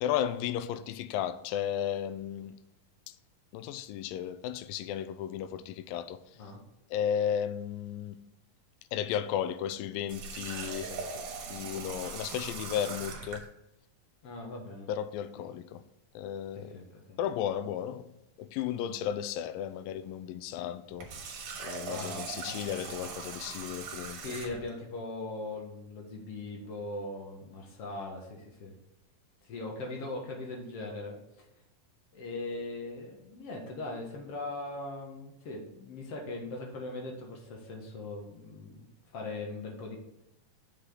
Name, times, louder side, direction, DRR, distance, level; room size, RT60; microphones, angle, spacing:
voice 1, 0.0-2.5 3.1-3.2 3.5-6.2 6.9-8.2 8.9-10.9 11.5-13.5 14.9-15.8 16.2-16.8 17.2-18.1 18.4-21.3 21.6-24.2, left 9 dB, 85° left, 2.3 m, -34 dB
Water tap faucet, 10.1-13.5 20.9-24.7, right 5 dB, 70° right, 2.7 m, -40 dB
voice 2, 10.4-11.0 14.2-14.9 16.5-17.2 21.9-23.1 24.2-28.7 29.4-31.2 32.1-38.9 39.1-40.0, left 2 dB, 50° left, 2.2 m, -40 dB
7.3 x 6.7 x 3.8 m
omnidirectional pair, 4.0 m